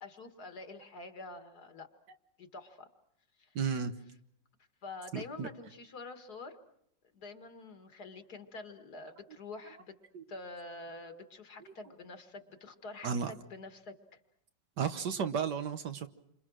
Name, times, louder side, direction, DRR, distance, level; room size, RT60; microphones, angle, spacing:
voice 1, 0.0-1.9 2.4-2.9 3.4-3.6 4.8-6.6 7.1-10.0 10.3-14.2, left 3 dB, 60° left, 7 dB, 2.2 m, -47 dB
voice 2, 3.6-3.9 5.1-5.5 10.1-10.2 13.0-13.3 14.8-16.1, right 6 dB, 65° right, 9 dB, 1.7 m, -33 dB
29.0 x 26.5 x 6.3 m, 0.75 s
omnidirectional pair, 2.0 m